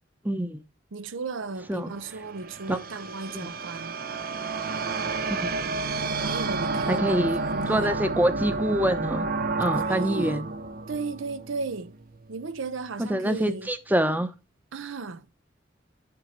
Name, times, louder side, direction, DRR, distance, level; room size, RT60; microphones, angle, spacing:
voice 1, 0.2-0.6 1.7-1.9 2.7-2.8 3.3-3.5 5.3-5.4 6.9-7.4 7.7-9.3 9.6-10.5 13.0-14.3, right 1 dB, 10° right, 0.8 m, -25 dB
voice 2, 0.9-3.9 6.1-8.0 9.7-10.5 10.9-12.0 12.3-13.7 14.7-15.3, right 4 dB, 90° right, 0.7 m, -35 dB
sound 1, 1.7-12.0, right 3 dB, 50° right, 0.6 m, -30 dB
7.7 x 4.3 x 6.6 m
head